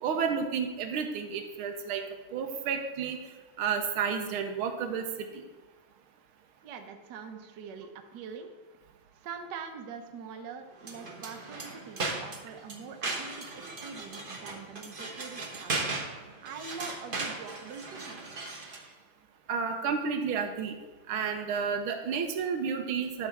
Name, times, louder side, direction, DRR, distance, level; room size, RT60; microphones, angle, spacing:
voice 1, 0.0-2.0 2.3-3.2 3.6-5.4 19.5-20.8 21.1-23.3, right 6 dB, 85° right, 5 dB, 1.6 m, -31 dB
voice 2, 6.6-8.5 9.1-18.2, right 6 dB, 65° right, 5 dB, 1.3 m, -44 dB
sound 1, 10.8-18.9, right 3 dB, 40° right, 0.8 m, -37 dB
11.5 x 3.9 x 5.8 m, 1.2 s
omnidirectional pair, 2.3 m